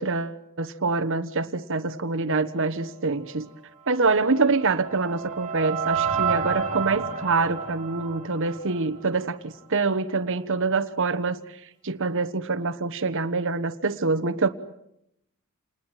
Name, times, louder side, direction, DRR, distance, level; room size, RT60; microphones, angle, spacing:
voice 1, 0.0-3.5 3.9-11.4 11.8-14.5, right 3 dB, 60° right, 11 dB, 1.2 m, -25 dB
sound 1, 4.1-9.3, right 6 dB, 35° right, 3.7 m, -30 dB
29.0 x 20.5 x 9.2 m, 0.80 s
head